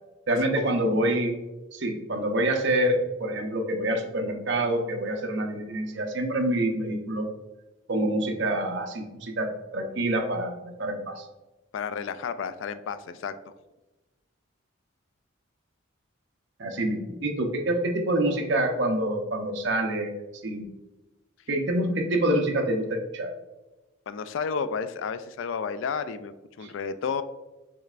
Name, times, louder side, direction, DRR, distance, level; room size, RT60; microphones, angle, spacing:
voice 1, 0.3-1.4 1.7-7.3 7.9-11.2 16.6-20.1 20.4-20.7 21.5-23.3 26.6-26.7, right 1 dB, 60° right, 3 dB, 0.7 m, -26 dB
voice 2, 11.7-13.5 24.1-27.2, left 6 dB, 70° left, 12 dB, 0.3 m, -32 dB
6.4 x 3.2 x 2.4 m, 1.1 s
head